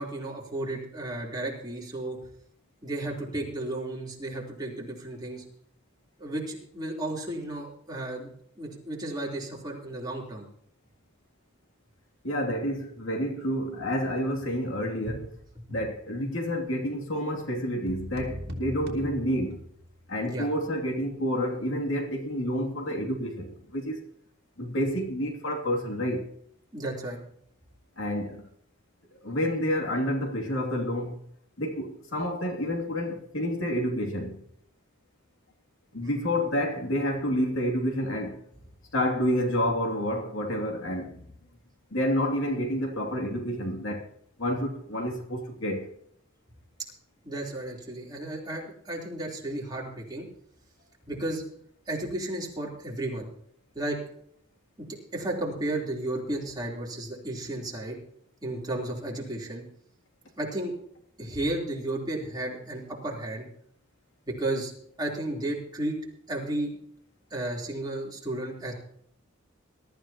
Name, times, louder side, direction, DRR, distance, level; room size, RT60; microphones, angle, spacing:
voice 1, 0.0-2.2 2.8-5.4 6.2-8.3 8.6-10.4 15.1-15.2 15.6-15.8 20.2-20.5 26.7-27.2 47.2-50.3 51.0-51.4 51.9-53.3 53.7-54.0 55.1-58.0 58.4-59.6 60.4-60.7 61.2-63.5 64.4-64.7 65.0-66.0 66.3-66.7 67.3-68.7, right 1 dB, 20° right, 3.7 m, -33 dB
voice 2, 12.2-15.2 15.7-19.6 20.1-24.0 24.6-26.3 28.0-28.5 29.2-31.2 31.6-34.4 35.9-38.4 38.9-41.2 41.9-44.1 44.4-45.8, equal, 70° left, 2.8 m, -29 dB
sound 1, 17.9-20.1, equal, 55° right, 2.8 m, -39 dB
22.0 x 13.5 x 3.0 m
head